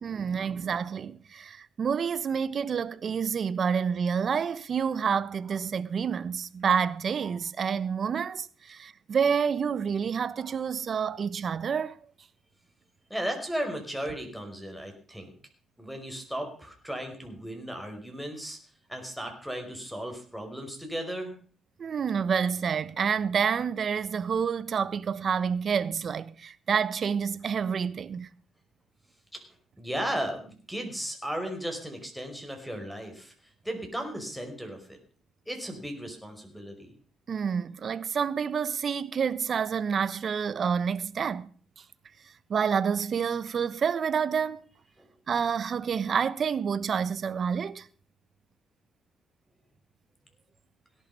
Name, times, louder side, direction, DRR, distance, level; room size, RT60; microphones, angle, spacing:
voice 1, 0.0-12.0 21.8-28.3 37.3-41.4 42.5-44.6 45.3-47.8, right 6 dB, 50° right, 1.1 m, -28 dB
voice 2, 13.1-15.3 15.8-18.6 18.9-21.3 29.3-29.4 29.8-33.3 33.6-35.0 35.5-36.9 45.0-45.1, equal, ahead, 5.2 m, -35 dB
17.5 x 11.5 x 5.4 m
cardioid pair, 90°, 0 cm